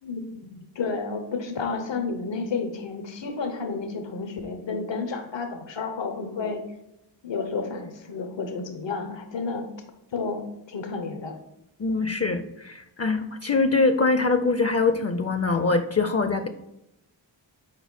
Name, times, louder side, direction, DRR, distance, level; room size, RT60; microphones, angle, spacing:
voice 1, 0.0-6.6 7.2-9.7 10.1-11.4, left 4 dB, 75° left, 6 dB, 0.9 m, -31 dB
voice 2, 11.8-16.5, left 3 dB, 35° left, 9 dB, 0.5 m, -23 dB
4.5 x 4.2 x 5.3 m, 0.85 s
cardioid pair, 40°, 45 cm